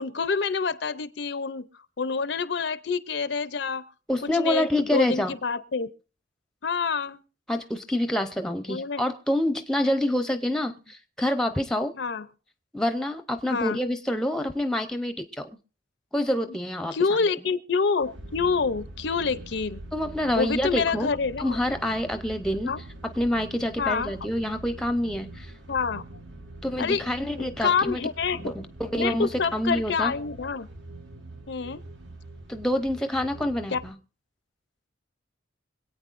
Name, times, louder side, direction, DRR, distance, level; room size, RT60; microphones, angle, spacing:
voice 1, 0.0-1.7 2.0-3.8 4.3-5.9 6.6-7.2 8.7-9.0 12.0-12.3 13.5-13.8 16.9-19.8 20.4-21.6 22.6-22.8 23.8-24.1 25.7-26.0 26.8-27.0 27.4-28.4 29.0-30.7 31.5-31.8 33.7-33.8, left 5 dB, 60° left, 14 dB, 0.6 m, -27 dB
voice 2, 4.1-5.3 7.5-11.9 12.7-15.5 16.1-16.9 19.9-21.1 21.4-22.7 23.2-25.5 26.6-28.0 28.4-30.1 32.5-33.9, left 1 dB, 5° left, 8 dB, 0.7 m, -27 dB
sound 1, 18.0-33.9, right 2 dB, 65° right, 1.9 m, -43 dB
26.0 x 8.8 x 2.5 m, 0.38 s
head